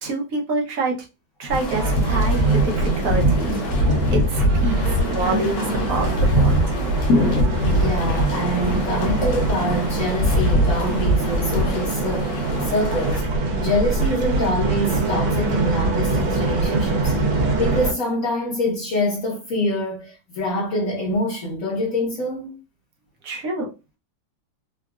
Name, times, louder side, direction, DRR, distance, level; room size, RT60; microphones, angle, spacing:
voice 1, 0.0-1.0 1.4-3.5 4.1-6.8 23.2-23.7, right 2 dB, 60° right, 1.0 m, -27 dB
sound 1, 1.5-13.2, equal, 70° left, 1.4 m, -22 dB
sound 2, 1.7-17.9, right 3 dB, 80° right, 1.5 m, -24 dB
voice 2, 7.7-13.3 13.6-22.6, left 1 dB, 50° left, 1.2 m, -25 dB
3.8 x 2.4 x 2.3 m
omnidirectional pair, 2.1 m